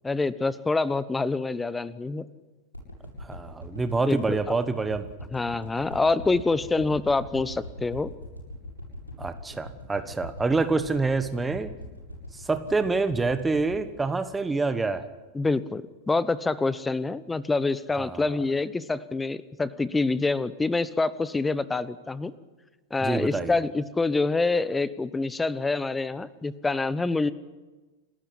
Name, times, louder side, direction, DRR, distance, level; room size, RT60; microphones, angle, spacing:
voice 1, 0.0-2.3 4.1-4.4 5.3-8.1 15.3-22.3 22.9-27.3, left 3 dB, 10° left, 18 dB, 1.0 m, -26 dB
sound 1, 2.7-15.1 15.5-15.6, left 1 dB, 85° left, 7.1 m, -41 dB
voice 2, 3.2-5.0 9.2-11.7 12.3-15.1 18.0-18.2 23.0-23.5, right 3 dB, 10° right, 11 dB, 1.3 m, -27 dB
30.0 x 13.0 x 10.0 m, 1.2 s
figure-of-eight pair, 90°, 0 cm